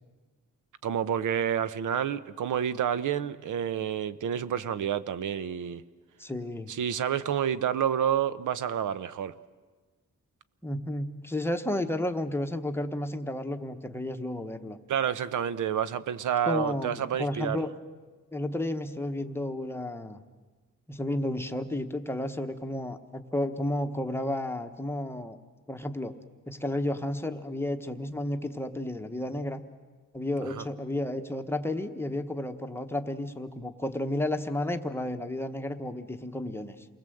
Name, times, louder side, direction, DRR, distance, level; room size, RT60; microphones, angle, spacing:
voice 1, 0.8-5.8 6.7-9.3 14.9-17.6 30.6-30.7, right 9 dB, 70° right, 0.9 m, -29 dB
voice 2, 6.2-6.7 10.6-14.8 16.5-17.7 18.3-20.2 20.9-25.4 25.7-26.1 26.5-29.6 30.1-36.9, left 1 dB, 10° left, 1.0 m, -32 dB
28.5 x 20.5 x 7.8 m
wide cardioid pair, 180°, 32 cm